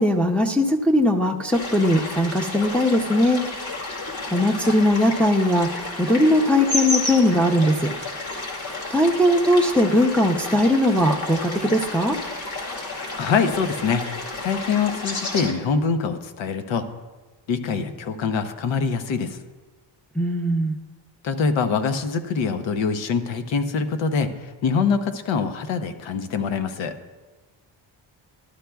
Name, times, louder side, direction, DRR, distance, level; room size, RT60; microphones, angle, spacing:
voice 1, 0.0-3.4 4.3-7.9 8.9-12.2 20.1-20.7, left 1 dB, 5° left, 0 dB, 0.6 m, -19 dB
sound 1, 1.5-15.5, left 2 dB, 55° left, 2.3 m, -31 dB
voice 2, 13.2-14.0 14.4-16.8 17.5-19.4 21.2-24.3 24.6-26.9, left 5 dB, 80° left, 9 dB, 0.9 m, -24 dB
12.5 x 11.5 x 2.3 m, 1.2 s
cardioid pair, 130°, 45 cm